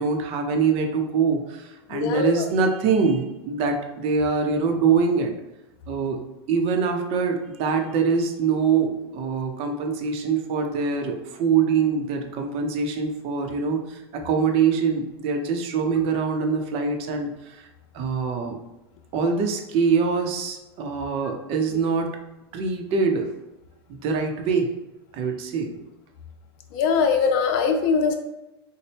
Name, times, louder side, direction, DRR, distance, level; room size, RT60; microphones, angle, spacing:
voice 1, 0.0-5.3 5.9-6.2 6.5-17.7 17.9-18.6 19.1-22.1 22.5-23.3 24.0-24.7 25.1-25.7, right 5 dB, 50° right, 4 dB, 0.6 m, -24 dB
voice 2, 1.9-2.4 26.7-28.1, left 5 dB, 55° left, 5 dB, 0.5 m, -22 dB
3.9 x 2.1 x 3.3 m, 0.95 s
hypercardioid pair, 100°, 13 cm